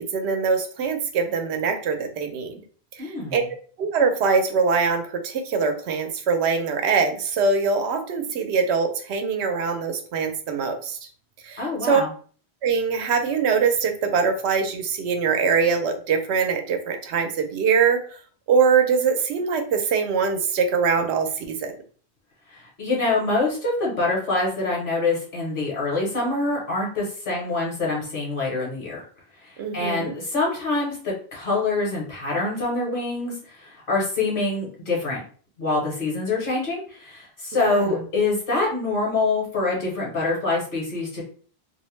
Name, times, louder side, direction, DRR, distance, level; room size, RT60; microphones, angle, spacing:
voice 1, 0.0-2.6 2.9-3.4 3.8-11.0 11.4-12.0 12.6-18.0 18.5-21.7 29.6-30.1 37.5-38.0, right 5 dB, 85° right, 6 dB, 0.8 m, -23 dB
voice 2, 3.0-3.4 11.6-12.1 22.5-29.0 29.4-35.2 35.6-41.2, left 3 dB, 60° left, -3 dB, 1.0 m, -25 dB
2.5 x 2.0 x 3.0 m, 0.44 s
omnidirectional pair, 1.1 m